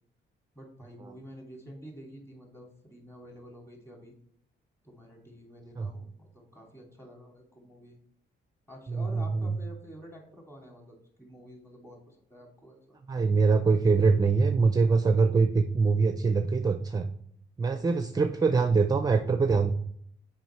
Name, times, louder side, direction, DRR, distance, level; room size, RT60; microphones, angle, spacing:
voice 1, 0.5-4.1 4.8-8.0 8.7-13.0, equal, 15° left, 0 dB, 2.6 m, -49 dB
voice 2, 13.1-17.1 17.6-19.7, right 4 dB, 20° right, 8 dB, 0.5 m, -23 dB
6.2 x 5.0 x 4.4 m, 0.66 s
cardioid pair, 90°, 20 cm